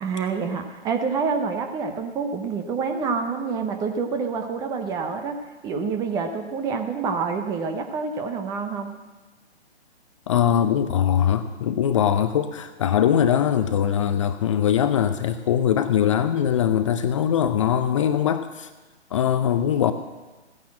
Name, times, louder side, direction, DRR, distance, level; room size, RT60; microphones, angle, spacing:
voice 1, 0.0-8.9, right 5 dB, 10° right, 6 dB, 0.7 m, -27 dB
voice 2, 10.3-18.7 19.1-19.9, left 9 dB, 30° left, 10 dB, 0.6 m, -21 dB
15.5 x 10.0 x 7.4 m, 1.2 s
figure-of-eight pair, 135°, 33 cm